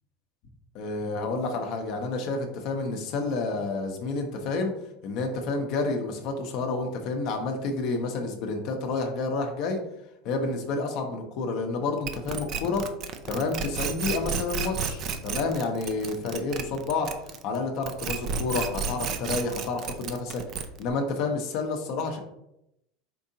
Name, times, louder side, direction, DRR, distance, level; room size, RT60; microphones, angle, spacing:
voice 1, 0.7-4.8 5.0-9.8 10.2-12.8 13.3-17.1 17.4-20.4 20.8-22.2, left 3 dB, 60° left, 3 dB, 0.8 m, -29 dB
sound 1, 12.1-17.6 17.8-20.9, right 5 dB, 50° right, 0.5 m, -32 dB
4.6 x 3.5 x 2.7 m, 0.82 s
hypercardioid pair, 85°, 0 cm